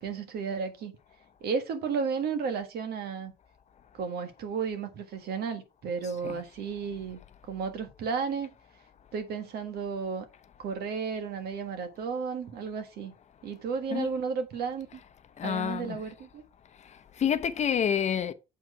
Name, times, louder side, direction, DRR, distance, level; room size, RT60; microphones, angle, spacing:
voice 1, 0.0-1.0 1.4-3.3 3.9-7.2 7.5-8.5 9.1-10.3 10.6-13.1 13.4-15.0 15.4-16.4, right 5 dB, 70° right, 1.6 m, -33 dB
voice 2, 6.0-6.4 13.9-14.1 15.4-16.0 16.8-18.3, left 8 dB, 40° left, 0.7 m, -29 dB
7.4 x 4.4 x 4.8 m
cardioid pair, 110°, 17 cm